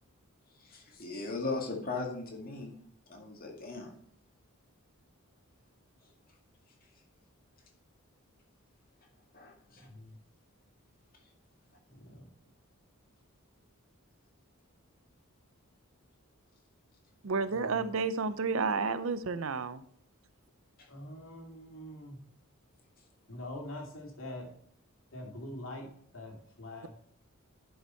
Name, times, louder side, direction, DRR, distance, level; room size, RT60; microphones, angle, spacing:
voice 1, 0.6-2.8 3.1-3.9 9.3-9.9, left 3 dB, 40° left, 2.2 m, -38 dB
voice 2, 9.8-10.2 11.9-12.3 17.5-17.9 20.9-22.2 23.3-24.5 25.1-25.9 26.1-26.9, left 1 dB, 65° left, 2.6 m, -44 dB
voice 3, 17.2-19.8, right 4 dB, 65° right, 0.6 m, -31 dB
11.0 x 5.6 x 4.4 m
head